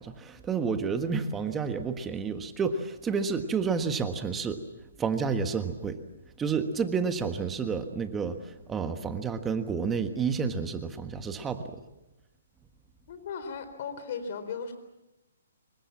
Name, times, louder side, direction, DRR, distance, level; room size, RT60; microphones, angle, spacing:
voice 1, 0.0-4.6 5.0-6.0 6.4-11.8, right 5 dB, 10° right, 8 dB, 1.4 m, -30 dB
voice 2, 13.1-14.7, left 5 dB, 45° left, 10 dB, 4.1 m, -36 dB
26.5 x 23.0 x 7.4 m, 0.95 s
hypercardioid pair, 160°, 0 cm